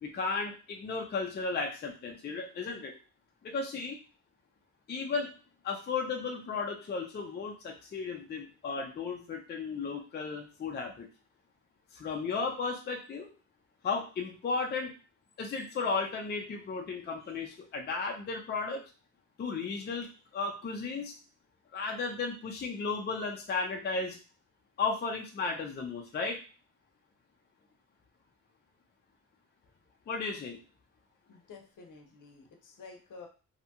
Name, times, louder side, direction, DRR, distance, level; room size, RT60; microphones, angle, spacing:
voice 1, 0.0-2.9 3.4-4.0 4.9-5.3 5.6-11.1 11.9-13.3 13.8-14.9 15.4-18.8 19.4-21.1 21.7-24.2 24.8-26.4 30.1-30.6, left 4 dB, 30° left, 2 dB, 0.4 m, -34 dB
voice 2, 31.3-33.3, left 4 dB, 65° left, 3 dB, 0.7 m, -50 dB
2.7 x 2.2 x 2.8 m, 0.35 s
wide cardioid pair, 160°, 34 cm